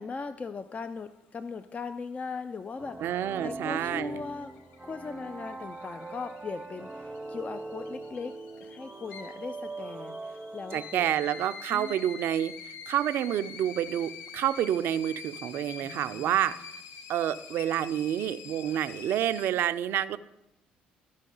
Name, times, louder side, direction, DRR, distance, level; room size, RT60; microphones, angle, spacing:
voice 1, 0.0-4.5 4.8-11.1 11.7-12.0 15.8-16.5, left 4 dB, 35° left, 11 dB, 0.5 m, -39 dB
sound 1, 2.8-11.4, right 2 dB, 20° right, 0.6 m, -42 dB
voice 2, 3.0-4.2 10.7-16.6 17.1-20.2, right 11 dB, 65° right, 13 dB, 0.4 m, -29 dB
sound 2, 3.2-19.5, left 6 dB, 75° left, 0.7 m, -46 dB
13.5 x 5.3 x 3.8 m, 0.93 s
hypercardioid pair, 55°, 4 cm